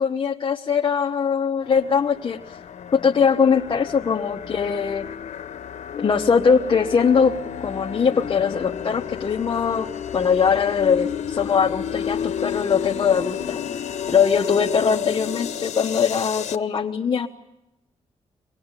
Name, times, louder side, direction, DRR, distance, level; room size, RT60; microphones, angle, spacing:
voice 1, 0.0-2.4 2.9-5.1 6.0-7.3 7.6-9.9 10.1-13.6 14.1-17.3, left 6 dB, 45° left, 1 dB, 1.1 m, -21 dB
sound 1, 1.6-16.6, left 8 dB, 90° left, 0.9 m, -31 dB
24.5 x 20.0 x 9.7 m, 0.93 s
wide cardioid pair, 145°, 12 cm